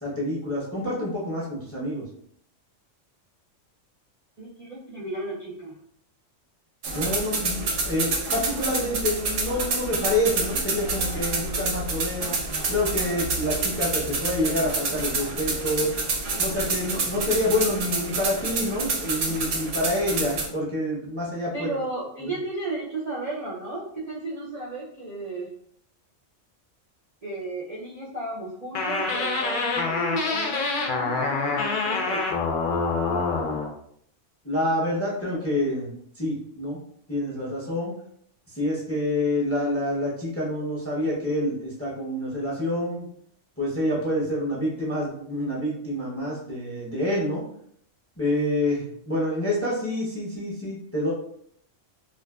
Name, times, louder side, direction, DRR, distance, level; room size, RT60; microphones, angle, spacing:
voice 1, 0.0-2.0 6.9-7.6 7.8-12.3 12.7-15.9 16.4-21.7 22.2-22.3 34.4-36.8 37.1-37.9 38.5-43.1 43.6-47.4 48.2-51.1, left 1 dB, 15° left, -6 dB, 0.5 m, -27 dB
voice 2, 4.4-5.8 21.5-25.5 27.2-32.3, right 2 dB, 45° right, -8 dB, 0.5 m, -34 dB
sound 1, 6.8-20.5, right 3 dB, 80° right, 0.9 m, -28 dB
sound 2, 28.7-33.7, left 4 dB, 60° left, 0.5 m, -26 dB
2.5 x 2.4 x 2.2 m, 0.67 s
omnidirectional pair, 1.3 m